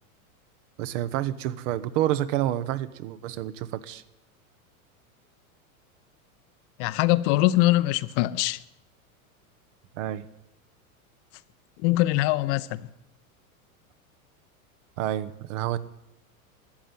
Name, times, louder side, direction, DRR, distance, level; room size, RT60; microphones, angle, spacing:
voice 1, 0.8-4.0 10.0-10.3 15.0-15.8, right 13 dB, 60° right, 1.1 m, -28 dB
voice 2, 6.8-8.6 11.8-12.8, left 17 dB, 55° left, 0.7 m, -22 dB
13.5 x 8.9 x 9.6 m
hypercardioid pair, 110°, 42 cm